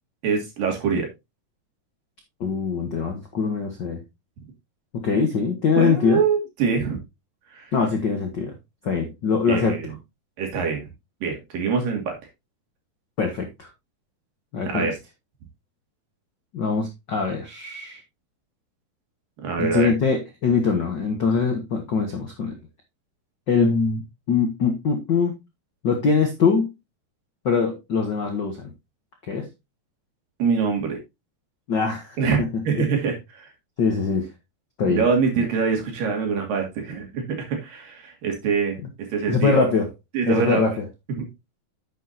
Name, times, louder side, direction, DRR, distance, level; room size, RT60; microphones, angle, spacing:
voice 1, 0.2-1.1 5.8-7.0 7.5-7.7 9.5-9.9 10.4-10.8 11.2-12.2 14.7-15.0 19.4-19.9 30.4-31.0 32.2-33.5 34.8-39.7 40.1-40.6 41.2-41.3, right 5 dB, 70° right, 3 dB, 4.0 m, -24 dB
voice 2, 2.4-4.0 4.9-6.2 7.7-8.5 8.8-9.8 13.2-13.7 14.5-14.9 16.5-18.0 19.6-22.5 23.5-24.0 24.3-25.4 25.8-26.7 27.4-28.7 29.3-29.5 31.7-32.5 33.8-34.3 34.8-35.0 39.3-39.9 40.2-40.8, left 5 dB, 70° left, 4 dB, 1.0 m, -23 dB
10.0 x 7.4 x 2.8 m, 0.22 s
omnidirectional pair, 4.2 m